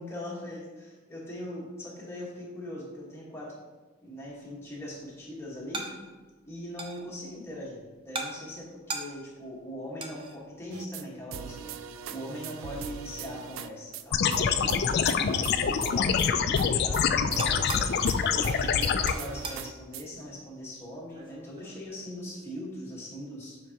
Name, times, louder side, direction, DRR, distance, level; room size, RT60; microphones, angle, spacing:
voice 1, 0.0-3.6 4.0-5.9 6.5-23.6, left 1 dB, 15° left, -5 dB, 1.5 m, -41 dB
sound 1, 4.2-22.8, right 3 dB, 25° right, 0.6 m, -45 dB
sound 2, 10.7-11.0 11.3-13.7 13.9-14.0 14.3-16.7 16.9-17.0 17.3-20.0, right 7 dB, 75° right, 0.3 m, -40 dB
sound 3, 14.1-19.1, left 7 dB, 55° left, 0.3 m, -25 dB
7.8 x 4.7 x 2.9 m, 1.3 s
head